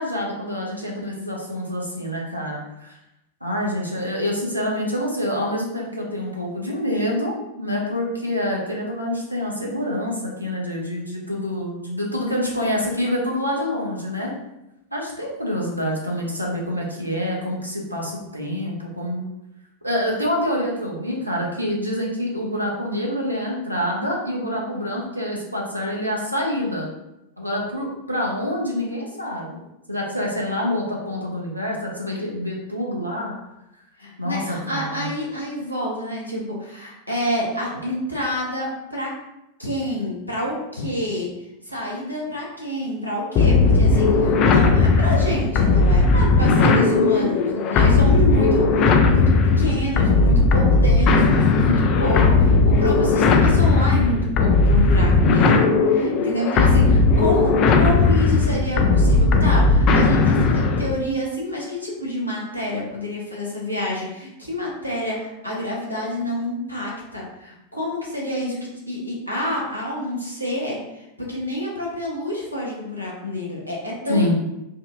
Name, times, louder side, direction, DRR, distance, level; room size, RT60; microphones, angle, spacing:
voice 1, 0.0-2.9 3.4-14.3 14.9-19.2 19.8-26.9 27.4-29.6 29.9-33.4 34.2-35.1 74.1-74.4, left 1 dB, 90° right, -3 dB, 0.7 m, -26 dB
voice 2, 34.0-39.1 39.6-41.3 41.6-49.2 49.6-74.3, left 1 dB, 90° left, -4 dB, 0.9 m, -28 dB
sound 1, 43.4-61.0, left 3 dB, 35° left, 0.3 m, -17 dB
4.1 x 2.3 x 2.5 m, 0.91 s
figure-of-eight pair, 90°, 0 cm